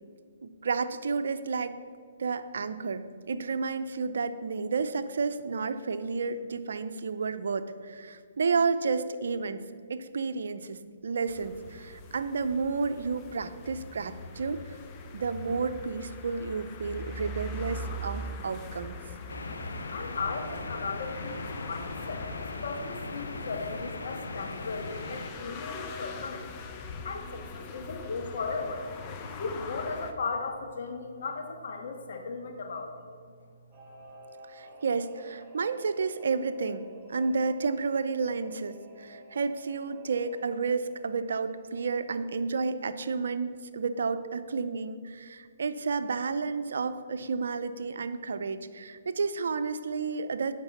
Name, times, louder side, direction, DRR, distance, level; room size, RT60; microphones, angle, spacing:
voice 1, 0.4-1.8 2.2-9.6 9.9-14.8 15.1-19.0 34.5-50.5, right 4 dB, 75° right, 11 dB, 0.6 m, -31 dB
sound 1, 11.3-30.1, left 2 dB, 30° left, 0.9 m, -42 dB
sound 2, 19.3-25.3, left 2 dB, 85° left, 1.0 m, -39 dB
voice 2, 19.4-22.3 22.6-26.5 27.0-28.8 29.3-33.2, left 4 dB, 65° left, 4 dB, 1.6 m, -36 dB
Singing / Musical instrument, 33.7-43.8 44.1-44.2, right 1 dB, 25° right, 1.5 m, -52 dB
9.6 x 6.0 x 7.2 m, 2.1 s
hypercardioid pair, 140°, 0 cm